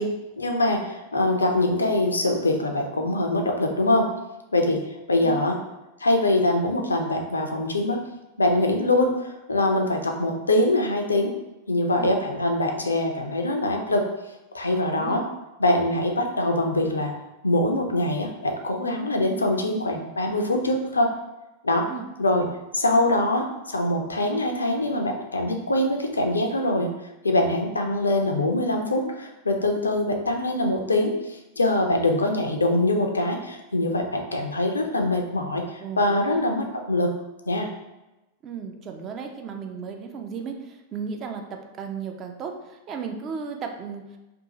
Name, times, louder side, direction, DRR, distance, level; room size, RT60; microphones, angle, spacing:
voice 1, 0.0-4.1 4.5-4.8 5.1-5.6 6.0-8.0 8.4-11.3 11.7-14.0 14.5-15.2 15.6-17.1 17.4-21.1 21.6-21.8 22.2-22.4 22.7-26.9 27.2-37.1 37.5-37.7, left 1 dB, 75° left, 3 dB, 0.3 m, -23 dB
voice 2, 5.2-5.5 12.0-12.1 14.7-15.2 21.9-22.1 35.8-36.4 38.4-44.2, right 6 dB, 30° right, 4 dB, 0.3 m, -35 dB
2.6 x 2.3 x 2.7 m, 1.0 s
figure-of-eight pair, 90°, 0 cm